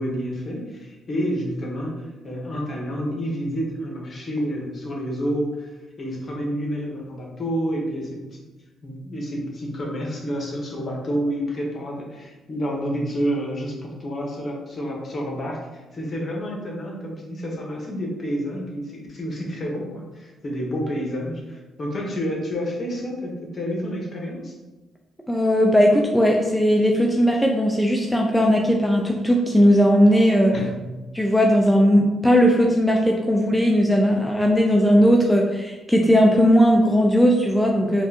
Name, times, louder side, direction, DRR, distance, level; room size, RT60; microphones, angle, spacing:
voice 1, 0.0-8.4 8.8-24.5 30.5-30.9, equal, 40° left, -1 dB, 1.0 m, -29 dB
voice 2, 25.3-30.6 31.1-38.1, equal, ahead, 0 dB, 0.4 m, -18 dB
4.5 x 2.3 x 2.8 m, 1.1 s
cardioid pair, 90°, 0 cm